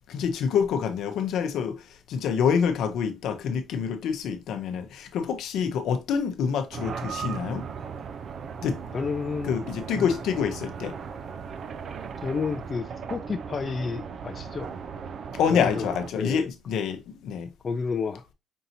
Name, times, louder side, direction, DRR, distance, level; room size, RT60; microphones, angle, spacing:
voice 1, 0.1-7.7 8.6-8.8 9.4-11.0 15.3-17.5, left 7 dB, 80° left, 0.7 m, -27 dB
sound 1, 6.7-16.1, right 6 dB, 60° right, 0.4 m, -37 dB
voice 2, 8.9-9.6 9.9-10.1 12.2-14.8 15.5-16.5 17.6-18.3, left 5 dB, 40° left, 0.4 m, -31 dB
5.3 x 2.8 x 2.6 m
cardioid pair, 90°, 0 cm